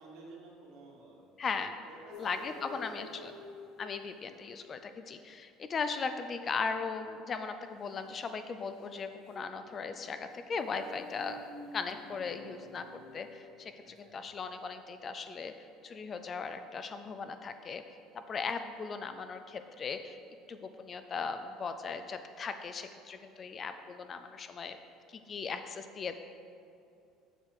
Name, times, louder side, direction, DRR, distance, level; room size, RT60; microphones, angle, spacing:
voice 1, 0.0-1.3 1.6-3.3 13.8-14.2, right 2 dB, 60° right, -2 dB, 1.8 m, -53 dB
voice 2, 1.4-1.8 2.2-3.3 3.8-12.8 13.1-15.5 15.8-17.8 18.3-20.2 20.5-24.8 25.1-26.1, left 5 dB, 25° left, 9 dB, 0.3 m, -38 dB
sound 1, 2.1-4.7 8.2-13.4, left 3 dB, 45° left, 0.7 m, -50 dB
7.4 x 6.7 x 4.7 m, 2.5 s
cardioid pair, 175°, 0 cm